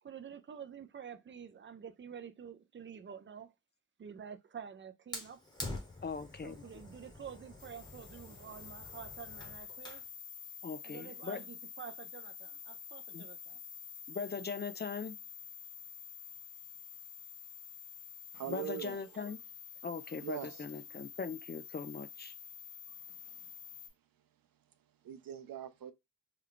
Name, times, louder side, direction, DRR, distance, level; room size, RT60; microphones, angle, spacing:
voice 1, 0.0-3.5 4.0-5.4 6.4-10.0 10.8-13.6, right 7 dB, 35° right, 0.4 m, -49 dB
Fire, 5.1-10.1, left 2 dB, 10° left, 1.0 m, -47 dB
voice 2, 6.0-6.6 10.6-11.4 13.1-13.3 14.1-15.2 18.5-19.4 19.8-22.3, left 5 dB, 30° left, 0.4 m, -40 dB
sound 1, 7.6-23.9, left 7 dB, 60° left, 0.9 m, -49 dB
voice 3, 18.3-19.3 20.2-21.0 23.1-23.5 25.0-25.9, right 10 dB, 85° right, 0.6 m, -43 dB
3.2 x 2.3 x 3.7 m
wide cardioid pair, 105°, 33 cm